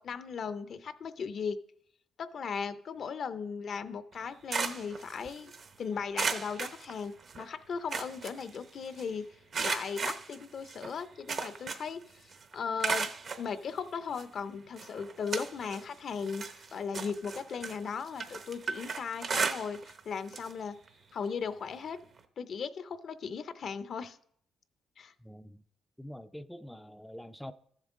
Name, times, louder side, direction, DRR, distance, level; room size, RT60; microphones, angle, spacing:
voice 1, 0.0-1.6 2.2-5.5 5.8-9.3 9.6-12.0 12.5-13.1 13.4-16.4 16.7-20.8 21.1-22.0 22.4-24.2 25.0-25.1, left 6 dB, 55° left, 0.5 m, -37 dB
sound 1, 4.1-5.7 6.1-7.4 7.7-9.0 9.5-12.0 12.3-13.5 14.2-14.3 14.8-15.9 16.2-20.0 20.3-20.5 20.9-21.0 22.2-22.3, right 5 dB, 50° right, 0.8 m, -35 dB
voice 2, 25.2-25.6 26.0-27.5, equal, 5° left, 0.4 m, -45 dB
13.5 x 7.3 x 3.6 m
cardioid pair, 90°, 0 cm